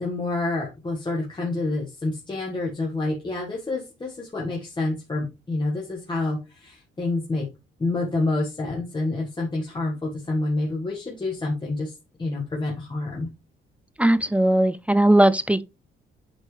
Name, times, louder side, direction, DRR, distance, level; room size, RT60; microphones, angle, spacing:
voice 1, 0.0-7.4 7.8-13.3, left 2 dB, 25° left, 1.7 m, -28 dB
voice 2, 14.0-15.6, right 1 dB, 5° right, 0.4 m, -18 dB
8.0 x 4.4 x 3.3 m
cardioid pair, 90°, 20 cm